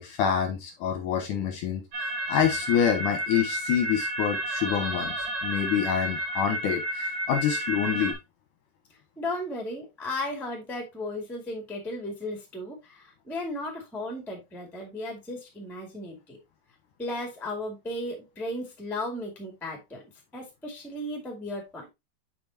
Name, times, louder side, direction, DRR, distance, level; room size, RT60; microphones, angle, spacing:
voice 1, 0.0-8.1, left 8 dB, 70° left, 4 dB, 2.0 m, -27 dB
sound 1, 1.9-8.1, right 1 dB, 40° right, 2.6 m, -31 dB
voice 2, 9.2-16.4 17.0-20.0 20.3-21.9, left 1 dB, ahead, 1 dB, 0.4 m, -35 dB
6.9 x 5.6 x 2.8 m, 0.21 s
omnidirectional pair, 4.6 m